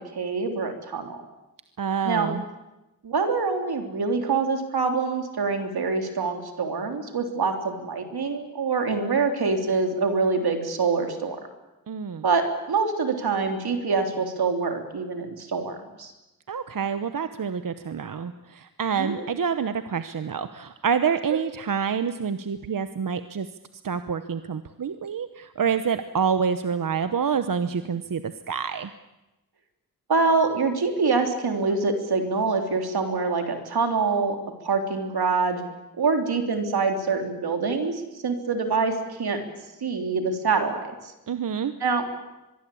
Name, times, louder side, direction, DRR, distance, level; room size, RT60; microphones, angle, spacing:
voice 1, 0.1-1.2 2.0-2.3 3.0-11.4 12.2-16.1 19.0-19.2 30.1-34.4 34.6-35.6 36.0-39.4 39.8-40.9 41.8-42.0, right 4 dB, 85° right, 5 dB, 3.4 m, -25 dB
voice 2, 1.8-2.4 11.9-12.2 16.5-23.5 23.8-28.9 41.3-41.7, right 6 dB, 60° right, 10 dB, 1.0 m, -27 dB
24.0 x 22.0 x 8.5 m, 0.99 s
wide cardioid pair, 130°, 37 cm